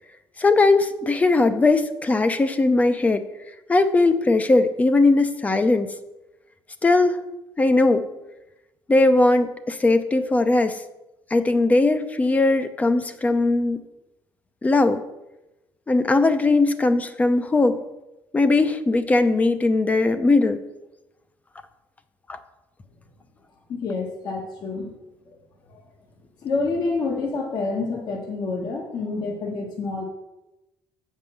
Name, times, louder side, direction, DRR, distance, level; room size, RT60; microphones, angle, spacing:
voice 1, 0.4-3.2 3.7-5.9 6.8-7.2 7.6-8.1 8.9-10.8 11.3-13.8 14.6-15.0 15.9-17.8 18.3-20.6 22.3-22.4, left 2 dB, 20° left, 11 dB, 0.6 m, -19 dB
voice 2, 23.7-24.9 25.3-25.4 25.7-25.8 26.4-30.0, left 3 dB, 55° left, 0 dB, 1.4 m, -28 dB
7.8 x 5.5 x 6.2 m, 0.96 s
cardioid pair, 130°, 8 cm